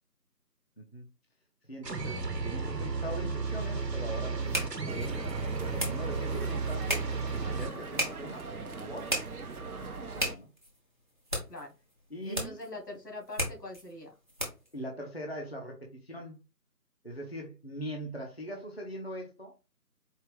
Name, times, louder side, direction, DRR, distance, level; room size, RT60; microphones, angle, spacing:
voice 1, 0.8-1.1 1.7-5.2 5.6-7.0 7.5-8.5 8.8-9.2 9.8-10.5 12.1-12.6 14.7-16.4 17.0-19.5, equal, 40° left, 0 dB, 0.5 m, -41 dB
sound 1, 1.8-7.7, right 4 dB, 85° right, 1.0 m, -33 dB
sound 2, 3.2-14.8, equal, 30° right, 0.9 m, -38 dB
sound 3, 4.9-10.4, right 4 dB, 60° right, 0.6 m, -41 dB
voice 2, 12.2-14.1, left 2 dB, 85° left, 1 dB, 1.9 m, -43 dB
4.4 x 2.4 x 3.4 m, 0.30 s
figure-of-eight pair, 165°, 49 cm